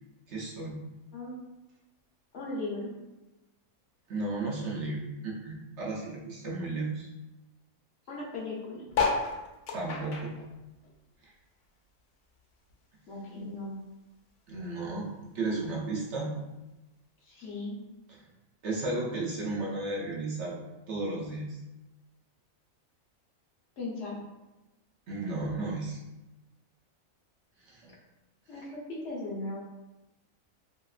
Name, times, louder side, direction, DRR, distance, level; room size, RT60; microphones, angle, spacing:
voice 1, 0.3-0.8 4.1-7.1 9.7-10.4 11.2-11.3 14.5-15.1 15.3-16.4 18.1-18.2 18.6-20.6 20.9-21.6 25.1-26.0 27.6-27.9 28.5-28.6, right 2 dB, 65° right, -3 dB, 0.8 m, -34 dB
voice 2, 1.1-1.5 2.3-2.9 8.1-8.8 13.1-13.8 17.2-17.8 23.8-24.2 28.5-29.6, left 2 dB, 65° left, -4 dB, 1.0 m, -37 dB
sound 1, 8.9-11.7 12.0-13.5 14.0-14.1 14.3-14.4 14.6-15.0 15.7-15.8, left 4 dB, 85° left, 1.0 m, -33 dB
3.0 x 2.8 x 2.3 m, 1.0 s
omnidirectional pair, 1.4 m